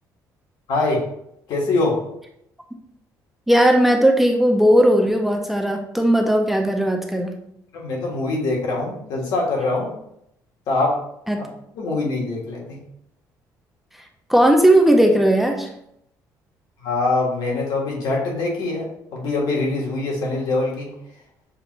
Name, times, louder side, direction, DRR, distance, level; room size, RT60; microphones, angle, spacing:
voice 1, 0.7-1.0 1.5-2.0 7.7-9.9 10.7-11.0 11.7-12.8 16.8-20.9, left 2 dB, 70° left, -2 dB, 1.5 m, -23 dB
voice 2, 3.5-7.4 11.3-11.5 14.3-15.7, right 1 dB, 5° right, 2 dB, 0.4 m, -17 dB
6.6 x 2.5 x 3.0 m, 0.75 s
cardioid pair, 150°, 7 cm